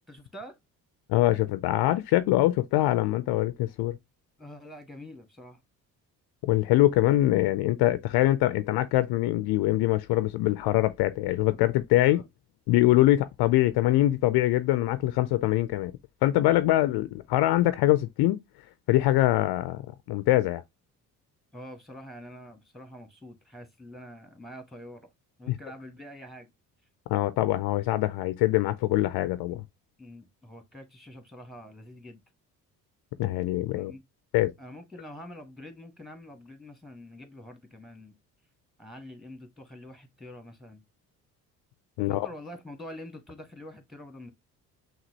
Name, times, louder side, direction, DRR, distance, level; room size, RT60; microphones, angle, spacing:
voice 1, 0.1-0.5 4.4-5.6 12.0-12.2 21.5-25.1 25.4-26.5 30.0-32.2 33.7-34.0 34.6-38.1 38.8-40.8 42.0-44.3, left 1 dB, ahead, 1.5 m, -45 dB
voice 2, 1.1-4.0 6.4-12.2 12.7-15.9 16.2-18.4 18.9-19.8 20.1-20.6 25.5-25.6 27.1-29.6 33.2-33.9 34.3-34.5 42.0-42.3, left 16 dB, 55° left, 0.5 m, -23 dB
5.9 x 2.4 x 2.9 m
hypercardioid pair, 50°, 46 cm